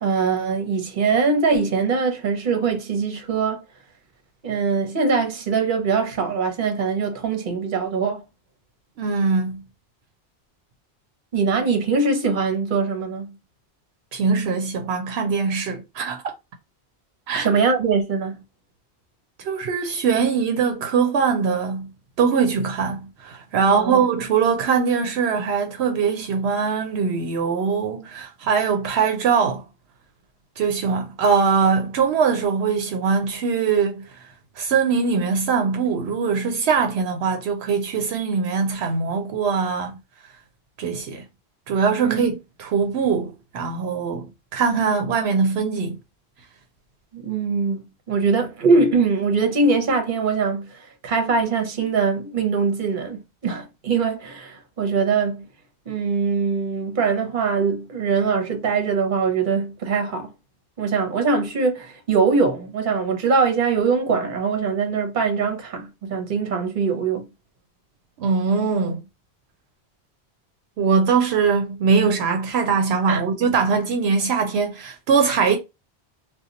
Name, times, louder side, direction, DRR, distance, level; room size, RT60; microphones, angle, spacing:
voice 1, 0.0-3.6 4.4-8.2 11.3-13.3 17.3-18.4 23.6-24.0 42.0-42.2 47.1-47.8 48.1-50.8 51.0-55.5 55.9-60.3 60.8-67.2 73.1-73.2, right 5 dB, 55° right, 0.9 m, -22 dB
voice 2, 9.0-9.6 14.1-16.2 17.3-17.5 19.4-21.9 22.2-29.6 30.6-34.2 34.6-40.0 40.8-41.2 41.7-46.0 68.2-69.0 70.8-75.6, right 5 dB, 80° right, 0.8 m, -22 dB
2.8 x 2.2 x 3.7 m
omnidirectional pair, 1.1 m